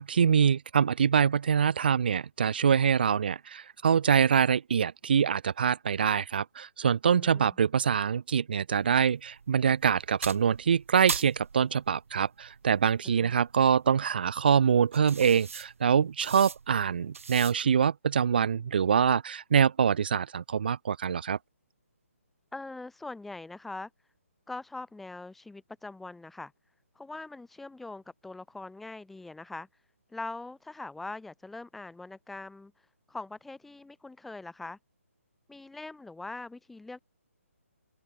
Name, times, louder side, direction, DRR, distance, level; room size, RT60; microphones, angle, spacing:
voice 1, 0.0-21.4, right 7 dB, 40° right, 0.4 m, -25 dB
voice 2, 7.1-7.5 13.2-13.3 22.5-23.9 24.5-26.5 26.9-29.8 30.1-34.8 35.5-37.0, left 2 dB, ahead, 1.3 m, -42 dB
sound 1, 8.7-17.9, right 5 dB, 70° right, 1.1 m, -42 dB
hypercardioid pair, 170°, 8 cm